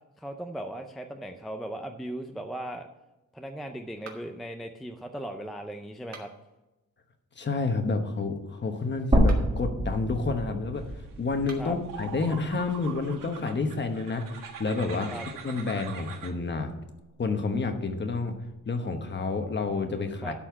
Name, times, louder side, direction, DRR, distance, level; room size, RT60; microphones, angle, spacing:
voice 1, 0.2-2.9 3.3-6.3 11.6-11.7 15.1-15.2 20.2-20.3, right 1 dB, ahead, 5 dB, 0.4 m, -37 dB
sound 1, 4.0-4.5 6.0-6.6 9.1-9.6 11.4-11.8, right 4 dB, 55° right, 1.8 m, -47 dB
voice 2, 7.4-10.9 11.2-15.2 15.4-16.7 17.2-18.3 18.7-20.3, left 3 dB, 35° left, 6 dB, 1.1 m, -29 dB
sound 2, 9.1-13.3 13.6-13.7 15.2-15.3, right 1 dB, 20° right, 1.3 m, -28 dB
sound 3, 11.3-11.4 11.8-16.3, right 7 dB, 85° right, 1.3 m, -43 dB
12.0 x 4.4 x 7.1 m, 1.0 s
wide cardioid pair, 160°, 32 cm